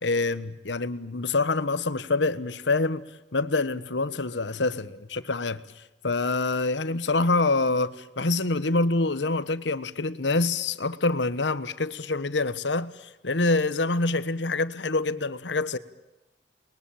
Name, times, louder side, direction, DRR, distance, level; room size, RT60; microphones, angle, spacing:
voice 1, 0.0-3.0 3.3-5.6 6.0-12.9 13.2-15.8, left 3 dB, 85° left, 1.3 m, -26 dB
29.5 x 22.0 x 8.7 m
head